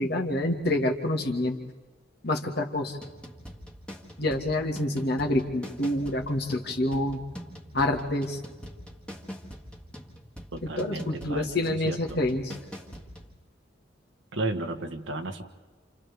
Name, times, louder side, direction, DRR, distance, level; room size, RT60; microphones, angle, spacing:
voice 1, 0.0-1.6 2.2-3.0 4.2-7.2 7.7-8.4 10.6-12.6, left 1 dB, 55° left, 2 dB, 1.9 m, -27 dB
sound 1, 3.0-13.3, equal, 5° left, 1.7 m, -44 dB
voice 2, 10.5-12.2 14.3-15.4, right 2 dB, 80° right, 5 dB, 1.5 m, -33 dB
30.0 x 28.0 x 3.5 m, 1.4 s
head